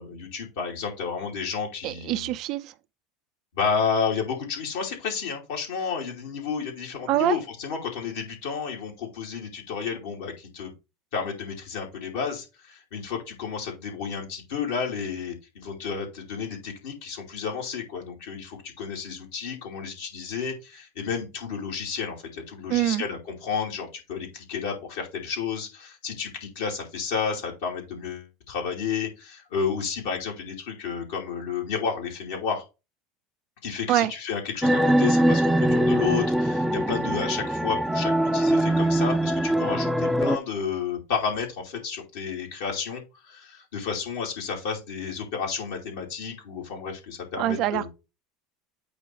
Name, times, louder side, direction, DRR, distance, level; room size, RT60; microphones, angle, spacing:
voice 1, 0.0-2.4 3.5-10.7 11.1-32.6 33.6-47.9, left 6 dB, 70° left, 2.6 m, -31 dB
voice 2, 1.8-2.7 7.1-7.4 22.7-23.0 33.9-34.1 47.4-47.9, right 13 dB, 55° right, 0.6 m, -24 dB
sound 1, 34.6-40.4, right 1 dB, 5° right, 0.6 m, -22 dB
8.5 x 3.1 x 5.0 m
hypercardioid pair, 80°, 0 cm